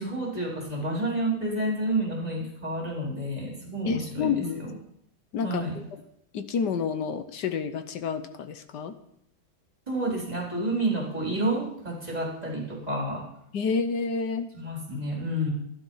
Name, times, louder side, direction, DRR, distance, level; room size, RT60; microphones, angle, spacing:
voice 1, 0.0-4.7 5.4-5.7 9.9-13.2 14.5-15.5, right 1 dB, 20° right, -3 dB, 4.2 m, -30 dB
voice 2, 3.9-4.6 5.3-5.8 6.3-8.9 13.5-14.5, left 5 dB, 65° left, 10 dB, 1.4 m, -29 dB
12.5 x 11.5 x 5.6 m, 0.72 s
omnidirectional pair, 2.2 m